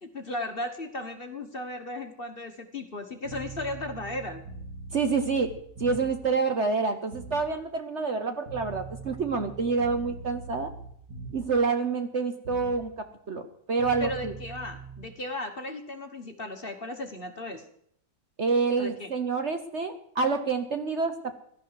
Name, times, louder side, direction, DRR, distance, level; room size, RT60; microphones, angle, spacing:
voice 1, 0.0-4.4 14.0-17.6 18.8-19.1, left 1 dB, 35° left, 6 dB, 1.3 m, -36 dB
sound 1, 3.2-6.3 7.1-7.5 8.5-11.6 12.4-12.8 13.8-15.0, right 4 dB, 65° right, 3.6 m, -42 dB
voice 2, 4.9-5.5 5.8-10.7 11.3-13.4 13.7-14.3 18.4-21.4, right 4 dB, 45° right, 7 dB, 1.2 m, -27 dB
17.0 x 12.5 x 4.7 m, 0.68 s
omnidirectional pair, 1.9 m